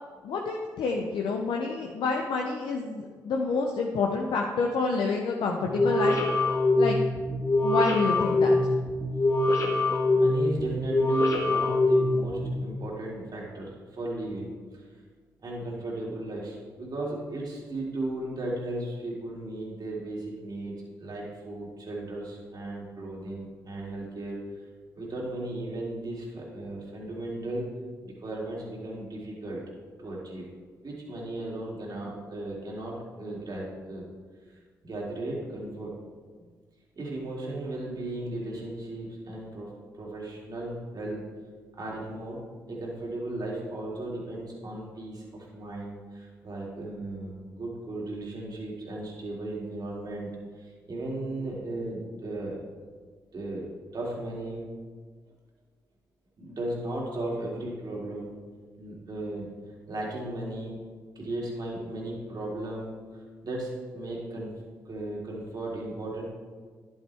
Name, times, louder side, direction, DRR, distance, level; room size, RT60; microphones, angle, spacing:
voice 1, 0.2-6.2 6.8-7.0 7.6-8.7, left 4 dB, 70° left, 1 dB, 0.8 m, -28 dB
sound 1, 5.7-12.5, left 2 dB, 40° left, 1.6 m, -24 dB
voice 2, 10.1-14.5 15.4-24.4 25.0-27.7 28.0-29.6 30.0-30.4 30.8-34.0 34.8-35.9 36.4-36.5 37.0-39.7 40.0-41.2 41.8-42.4 42.7-50.3 50.6-52.6 53.3-53.6 53.9-54.7 56.4-58.3 58.7-59.5 59.9-60.8 61.1-63.0 63.4-64.6 64.8-66.3, right 1 dB, 50° right, -4 dB, 3.0 m, -36 dB
10.5 x 7.3 x 3.5 m, 1.5 s
hypercardioid pair, 40°, 9 cm